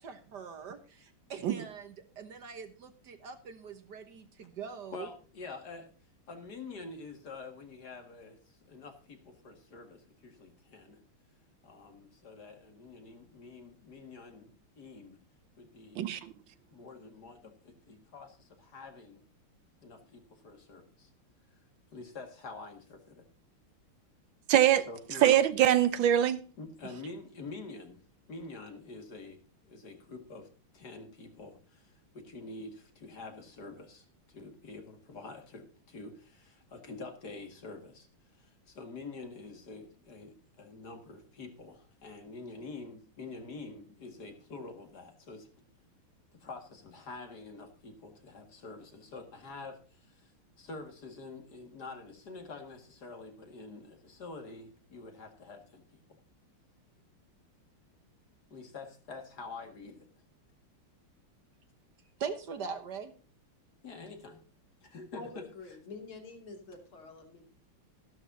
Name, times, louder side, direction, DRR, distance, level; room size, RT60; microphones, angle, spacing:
voice 1, 0.0-5.1 62.2-63.2, right 6 dB, 55° right, 1.6 m, -42 dB
voice 2, 4.9-5.9 6.3-11.0 11.6-15.2 15.6-16.0 16.7-19.2 19.8-21.1 21.9-23.3 24.9-25.3 26.6-28.0 28.3-30.5 30.7-38.1 38.3-45.5 46.3-50.3 50.6-56.0 58.5-60.1 63.8-64.4 64.8-65.5, left 3 dB, 50° left, 2.4 m, -47 dB
voice 3, 16.0-16.3 24.5-24.8 25.2-26.4, right 11 dB, 70° right, 1.4 m, -23 dB
voice 4, 65.2-67.5, left 3 dB, 75° left, 3.4 m, -47 dB
14.0 x 12.0 x 2.7 m
omnidirectional pair, 2.3 m